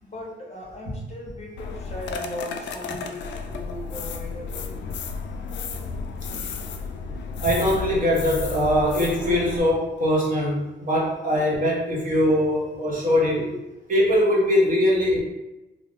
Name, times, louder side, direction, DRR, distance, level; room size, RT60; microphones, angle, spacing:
voice 1, 0.0-3.2 3.5-5.0 6.3-6.6 11.3-11.4 12.1-12.3 12.9-13.6, left 1 dB, 35° left, -2 dB, 0.8 m, -39 dB
sound 1, 1.6-9.6, left 5 dB, 65° left, 0.4 m, -33 dB
voice 2, 7.4-13.4 13.9-15.2, left 1 dB, 40° right, -4 dB, 1.0 m, -21 dB
2.6 x 2.3 x 3.4 m, 1.0 s
cardioid pair, 90°, 20 cm